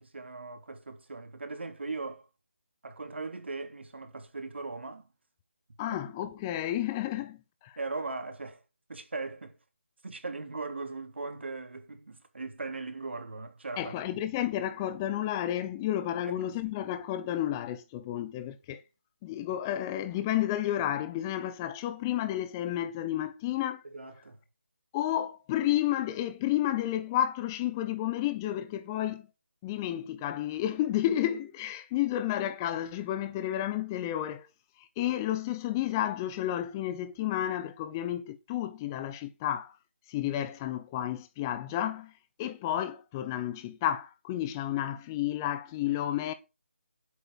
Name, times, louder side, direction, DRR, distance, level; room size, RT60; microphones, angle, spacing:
voice 1, 0.0-2.3 2.8-5.1 5.9-6.0 7.8-8.6 8.9-9.6 10.0-14.2 16.2-16.7 23.8-24.4, right 3 dB, 60° right, 3.3 m, -39 dB
voice 2, 5.8-7.8 13.8-18.8 19.2-23.8 24.9-29.3 29.6-34.5 34.8-39.8 40.1-42.1 42.4-46.3, left 12 dB, 15° left, 0.7 m, -31 dB
11.0 x 8.4 x 6.2 m
figure-of-eight pair, 155°, 7 cm